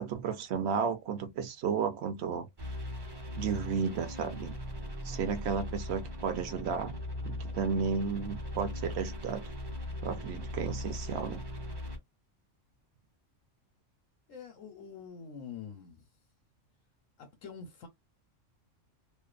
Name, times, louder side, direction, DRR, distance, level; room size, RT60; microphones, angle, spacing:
voice 1, 0.0-2.5 3.4-4.6 5.0-7.0 7.2-9.4 10.0-11.4, right 6 dB, 65° right, 0.8 m, -33 dB
sound 1, 2.6-12.0, left 1 dB, 30° right, 0.5 m, -39 dB
voice 2, 14.3-16.1 17.2-17.9, left 6 dB, 90° left, 1.1 m, -46 dB
2.6 x 2.1 x 2.4 m
omnidirectional pair, 1.3 m